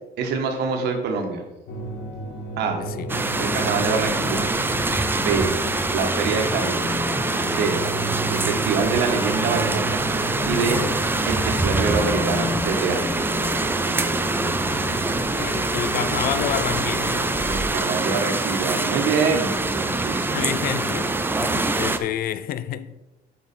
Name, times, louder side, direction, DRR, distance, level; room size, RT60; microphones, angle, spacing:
voice 1, 0.2-1.4 2.6-2.8 3.4-4.5 5.1-5.5 5.9-6.8 7.4-7.8 8.3-10.0 10.4-10.8 11.2-13.2 17.5-20.5, right 5 dB, 80° right, 1.6 m, -25 dB
sound 1, 1.7-17.6, left 1 dB, 75° left, 1.7 m, -32 dB
sound 2, 3.1-22.0, right 2 dB, 10° right, 0.6 m, -24 dB
voice 2, 15.3-17.1 20.3-22.9, left 10 dB, 60° left, 0.5 m, -29 dB
8.9 x 5.3 x 4.5 m
cardioid pair, 110°, 17 cm